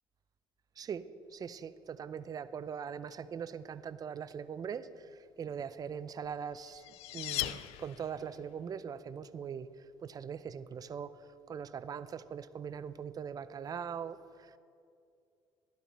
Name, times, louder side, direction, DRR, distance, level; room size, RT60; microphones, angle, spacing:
voice 1, 1.3-6.8 7.1-9.7 10.0-11.1 11.5-14.6, right 7 dB, 40° right, 14 dB, 0.5 m, -41 dB
sound 1, 6.3-8.4, left 15 dB, 85° left, 0.4 m, -39 dB
12.5 x 11.5 x 4.2 m, 2.5 s
supercardioid pair, 90°, 10 cm